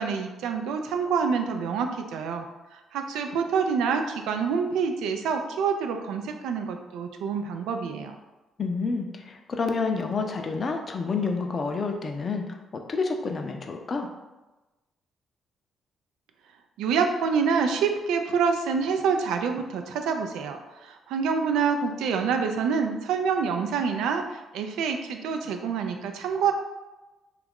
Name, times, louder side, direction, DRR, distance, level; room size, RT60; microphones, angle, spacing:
voice 1, 0.0-2.5 2.7-8.2 16.8-26.5, right 6 dB, 90° right, 5 dB, 0.3 m, -27 dB
voice 2, 8.6-12.4 12.9-14.1, left 4 dB, 40° left, 4 dB, 0.4 m, -29 dB
3.0 x 2.4 x 3.5 m, 1.1 s
cardioid pair, 90°, 0 cm